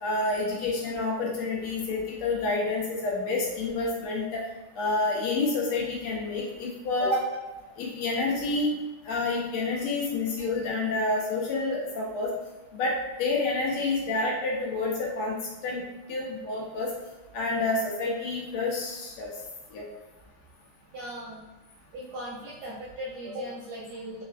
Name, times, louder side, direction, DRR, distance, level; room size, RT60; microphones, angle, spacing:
voice 1, 0.0-4.4 4.8-7.2 7.8-8.8 9.1-12.3 12.7-15.3 15.6-15.8 16.1-16.9 17.3-19.3 19.7-19.8, left 3 dB, 90° left, -4 dB, 1.9 m, -28 dB
voice 2, 20.9-21.4 21.9-24.2, equal, 70° right, -5 dB, 0.9 m, -38 dB
4.5 x 2.5 x 2.4 m, 1.2 s
omnidirectional pair, 2.4 m